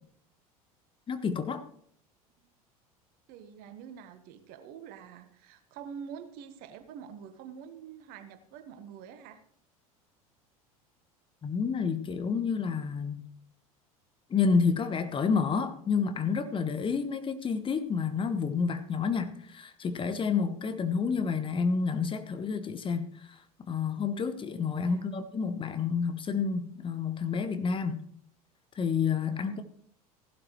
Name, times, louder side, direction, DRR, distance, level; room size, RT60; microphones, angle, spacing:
voice 1, 1.1-1.6 11.4-13.2 14.3-23.1 23.7-28.0 28.8-29.6, left 5 dB, 25° left, 1.2 m, -29 dB
voice 2, 3.3-9.4 24.8-25.0 29.3-29.6, right 7 dB, 50° right, 1.4 m, -46 dB
15.5 x 12.0 x 3.2 m
figure-of-eight pair, 75°, 19 cm